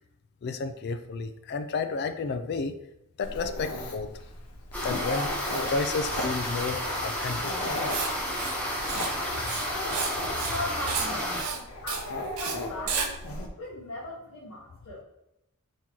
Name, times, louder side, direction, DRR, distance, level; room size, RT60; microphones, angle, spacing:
voice 1, 0.4-2.7 3.2-4.1 4.8-5.3 5.7-7.7, left 4 dB, 50° left, 9 dB, 0.3 m, -31 dB
Dog, 3.2-13.5, left 1 dB, 90° left, 0.7 m, -37 dB
sound 1, 4.7-11.4, equal, 5° left, 1.0 m, -32 dB
Writing, 7.9-8.1 8.4-8.6 8.9-9.1 9.4-10.1 10.4-10.6 10.9-11.1 11.4-11.6 11.9-12.0 12.4-12.5 12.9-13.1, right 6 dB, 80° right, 0.7 m, -31 dB
voice 2, 10.5-13.1 13.6-15.0, left 1 dB, 65° left, -8 dB, 1.1 m, -39 dB
4.3 x 3.7 x 3.0 m, 0.87 s
head